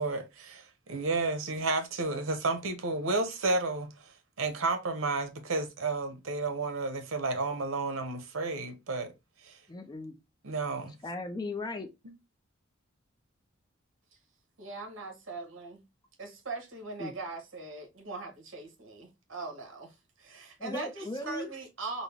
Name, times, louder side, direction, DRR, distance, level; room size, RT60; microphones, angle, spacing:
voice 1, 0.0-9.1 9.4-9.6 10.4-11.0, right 3 dB, 85° right, 0.8 m, -32 dB
voice 2, 9.7-10.1 11.0-11.9 17.0-17.1 20.6-21.5, left 2 dB, 20° left, 0.4 m, -37 dB
voice 3, 14.6-15.8 16.2-22.0, right 3 dB, 65° right, 1.3 m, -41 dB
3.8 x 2.1 x 3.4 m
head